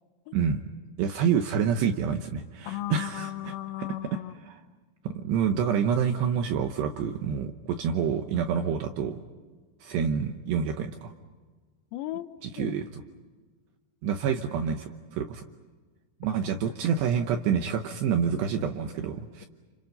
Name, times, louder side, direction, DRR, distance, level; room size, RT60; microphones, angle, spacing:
voice 1, 0.3-0.6 1.0-3.5 4.5-4.6 5.0-9.2 9.8-11.1 12.4-12.9 14.0-15.4 16.2-19.5, right 7 dB, 75° right, 6 dB, 2.5 m, -27 dB
voice 2, 2.7-4.4 11.9-12.8, left 14 dB, 90° left, 11 dB, 3.7 m, -36 dB
29.5 x 29.5 x 5.5 m, 1.4 s
omnidirectional pair, 6.0 m